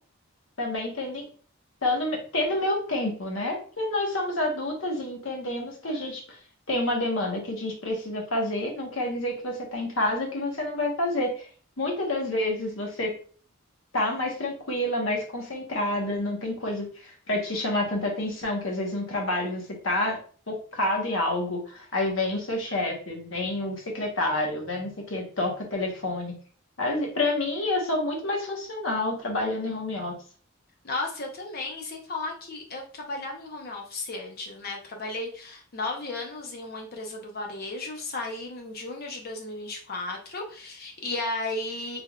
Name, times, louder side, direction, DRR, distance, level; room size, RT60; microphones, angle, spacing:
voice 1, 0.6-1.2 1.8-6.2 6.7-11.5 11.8-13.1 13.9-20.2 20.5-26.4 26.8-30.2, left 1 dB, 70° left, 0 dB, 1.1 m, -28 dB
voice 2, 30.8-42.0, left 2 dB, 50° left, 2 dB, 0.7 m, -34 dB
3.5 x 3.3 x 2.3 m, 0.42 s
head